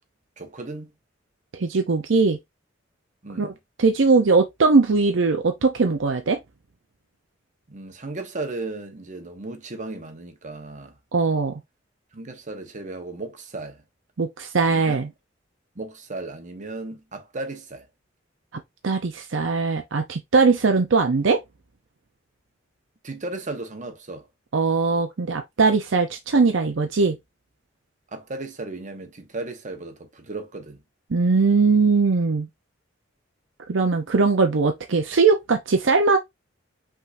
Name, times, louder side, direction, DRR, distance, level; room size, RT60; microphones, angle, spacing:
voice 1, 0.4-0.9 3.2-3.5 7.7-11.0 12.1-13.8 14.6-15.1 15.7-17.9 23.0-24.3 28.1-30.8, right 2 dB, 40° right, 1.1 m, -35 dB
voice 2, 1.5-2.4 3.4-3.5 3.8-6.4 11.1-11.5 14.2-15.1 18.8-21.4 24.5-27.2 31.1-32.5 33.7-36.2, right 4 dB, 70° right, 0.6 m, -20 dB
5.6 x 3.6 x 2.6 m
head